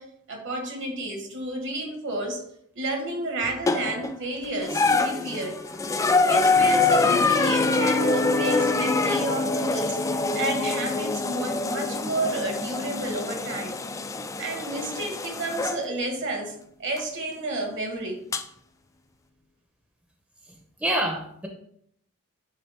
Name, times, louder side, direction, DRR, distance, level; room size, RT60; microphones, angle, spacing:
voice 1, 0.0-2.4 2.7-5.6 6.2-10.0 10.3-13.8 14.4-18.2, right 2 dB, 60° right, 2 dB, 1.6 m, -31 dB
sound 1, 3.7-4.1 4.6-15.8 17.0-17.1 18.3-18.4, left 3 dB, 15° left, 0.3 m, -25 dB
Piano, 6.5-14.6, left 2 dB, 80° left, 0.7 m, -32 dB
voice 2, 20.5-21.5, right 1 dB, 5° right, 2 dB, 0.7 m, -28 dB
9.4 x 3.4 x 3.5 m, 0.70 s
head